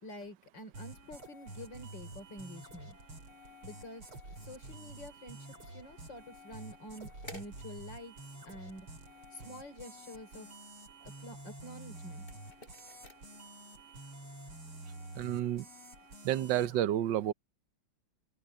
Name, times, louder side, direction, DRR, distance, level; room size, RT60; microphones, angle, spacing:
voice 1, 0.0-3.0 3.6-4.1 4.4-8.1 8.5-8.9 9.3-10.5 11.0-12.3, equal, 60° left, 4.4 m, -48 dB
sound 1, 0.7-16.8, right 1 dB, 85° right, 6.1 m, -49 dB
sound 2, 6.5-14.0, left 1 dB, 25° left, 5.5 m, -57 dB
voice 2, 15.2-15.6 16.2-17.3, right 12 dB, 65° right, 1.5 m, -30 dB
open air
omnidirectional pair, 2.3 m